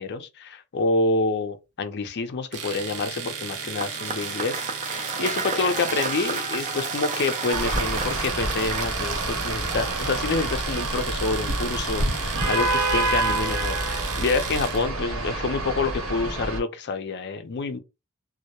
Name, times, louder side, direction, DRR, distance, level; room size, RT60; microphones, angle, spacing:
voice 1, 0.0-17.8, left 3 dB, 50° left, 0.4 m, -27 dB
Domestic sounds home sounds, 2.5-14.9, right 6 dB, 80° right, 0.6 m, -35 dB
Cheering / Applause / Crowd, 3.5-10.6, right 4 dB, 35° right, 0.4 m, -32 dB
sound 1, 7.5-16.6, right 2 dB, 65° right, 1.1 m, -27 dB
2.2 x 2.0 x 2.9 m
head